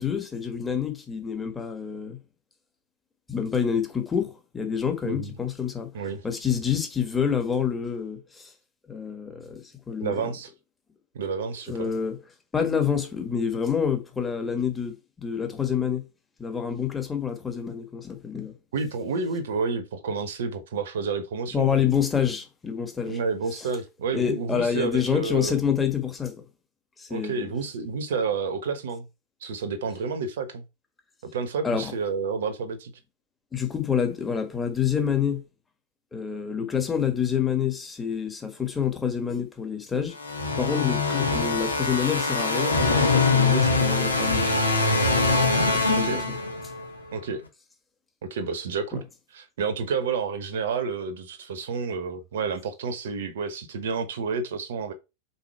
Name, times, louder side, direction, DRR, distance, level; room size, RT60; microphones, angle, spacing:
voice 1, 0.0-2.2 3.3-5.9 6.2-8.5 8.9-10.1 11.7-12.2 12.5-16.0 16.4-18.5 21.5-23.2 24.1-26.4 27.0-27.5 31.6-31.9 33.5-35.4 36.1-40.1 40.6-44.7 45.7-46.2 48.9-49.0, left 7 dB, 15° left, 1.5 m, -27 dB
voice 2, 5.9-6.2 10.0-10.5 11.1-11.9 18.7-21.8 23.1-25.6 27.1-29.1 29.4-30.6 31.3-32.9 46.0-46.2 47.1-47.4 48.2-49.0 49.3-54.9, right 5 dB, 60° right, 1.0 m, -30 dB
sound 1, 40.2-46.9, left 3 dB, 80° left, 1.3 m, -23 dB
5.6 x 4.2 x 4.5 m
figure-of-eight pair, 90°, 0 cm